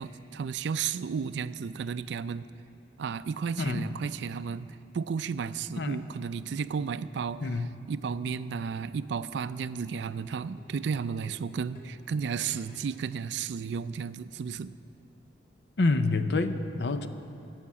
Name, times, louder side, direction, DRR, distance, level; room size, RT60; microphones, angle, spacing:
voice 1, 0.0-2.5 3.0-14.8, right 6 dB, 75° right, 14 dB, 0.3 m, -33 dB
sound 1, 10.4-13.0 13.8-13.9, equal, 45° left, 2.1 m, -52 dB
voice 2, 15.8-17.1, left 3 dB, 70° left, 10 dB, 0.6 m, -27 dB
14.5 x 5.8 x 8.5 m, 2.7 s
head